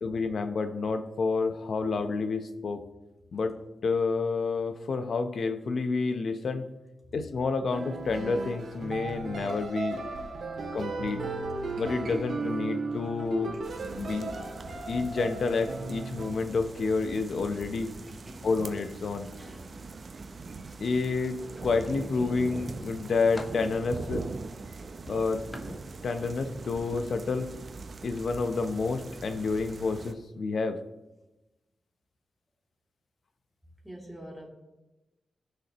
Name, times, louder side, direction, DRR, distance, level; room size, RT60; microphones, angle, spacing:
voice 1, 0.0-2.8 3.3-3.6 3.8-6.7 7.1-10.0 10.7-11.2 11.8-13.5 14.0-14.3 14.9-17.9 18.4-19.3 20.8-24.2 25.1-25.8 26.0-27.5 28.0-30.8, left 4 dB, 65° left, 8 dB, 0.9 m, -29 dB
sound 1, 7.7-16.3, right 3 dB, 70° right, 2.0 m, -36 dB
sound 2, 13.6-30.1, right 4 dB, 50° right, 0.7 m, -42 dB
voice 2, 18.0-18.6 19.1-20.0 33.8-34.5, right 1 dB, ahead, -2 dB, 2.8 m, -47 dB
sound 3, 21.5-22.3 22.8-23.7 25.1-26.5 26.9-27.2 28.1-28.3 28.6-28.8, left 1 dB, 25° left, 1.4 m, -45 dB
18.5 x 6.6 x 3.1 m, 1.0 s
wide cardioid pair, 110°, 0 cm